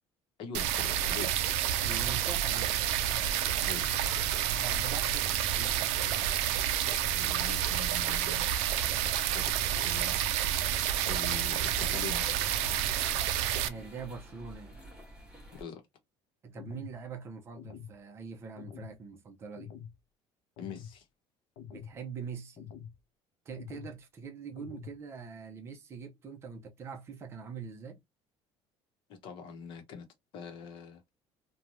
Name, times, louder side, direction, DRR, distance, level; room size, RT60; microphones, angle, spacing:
voice 1, 0.4-1.3 3.6-3.9 7.0-8.5 9.2-10.2 11.1-12.4 15.5-15.8 20.6-21.1 29.1-30.1 30.3-31.1, left 6 dB, 50° left, 0.8 m, -43 dB
sound 1, 0.5-13.7, right 11 dB, 80° right, 0.4 m, -29 dB
voice 2, 1.8-2.8 4.5-5.9 13.7-14.8 16.4-19.7 21.7-22.7 23.4-28.0, right 5 dB, 25° right, 0.5 m, -43 dB
sound 2, 6.1-15.6, right 1 dB, 5° right, 1.1 m, -50 dB
sound 3, 16.6-17.0 17.6-18.0 18.6-19.0 19.6-20.0 20.6-21.0 21.6-22.0 22.6-23.0 23.6-24.0 24.6-25.0, left 8 dB, 70° left, 0.5 m, -46 dB
3.1 x 2.2 x 2.5 m
cardioid pair, 180°, 11 cm